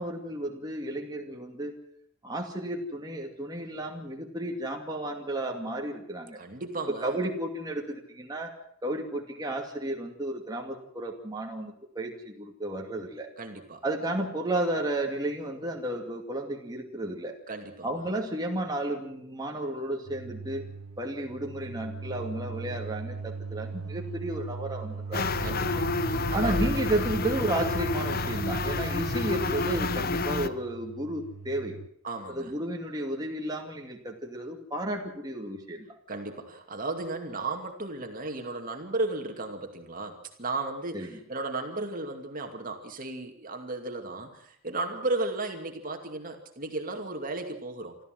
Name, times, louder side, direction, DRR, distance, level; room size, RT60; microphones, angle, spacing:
voice 1, 0.0-1.8 2.2-6.4 6.9-8.5 8.8-13.3 13.8-17.4 17.8-20.7 21.0-25.2 26.3-31.8 32.3-35.9 40.9-41.2, right 1 dB, 20° right, 1 dB, 2.5 m, -33 dB
voice 2, 6.4-7.2 13.4-13.8 17.5-18.1 25.4-26.6 32.0-32.5 36.1-48.0, right 2 dB, 45° right, 4 dB, 2.5 m, -35 dB
sound 1, 20.0-31.9, right 4 dB, 90° right, 0.7 m, -39 dB
sound 2, 25.1-30.5, left 3 dB, 50° left, 1.0 m, -29 dB
25.5 x 14.0 x 7.8 m, 0.70 s
head